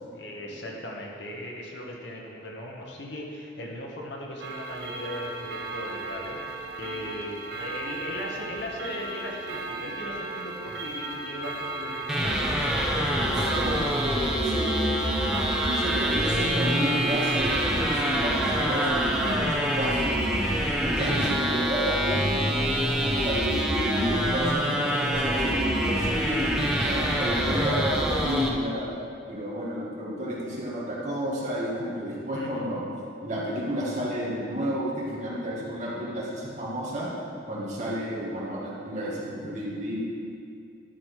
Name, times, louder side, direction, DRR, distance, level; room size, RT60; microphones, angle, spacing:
voice 1, 0.2-15.3 32.3-32.7, left 1 dB, 70° left, -1 dB, 1.5 m, -38 dB
Clock, 4.4-19.4, right 2 dB, 60° right, 1.0 m, -35 dB
sound 1, 12.1-28.5, equal, 5° right, 0.8 m, -26 dB
voice 2, 15.6-20.3 20.8-28.9 29.3-32.9 33.2-37.1 37.5-40.0, equal, 40° right, -6 dB, 2.0 m, -31 dB
11.5 x 6.4 x 4.8 m, 2.4 s
head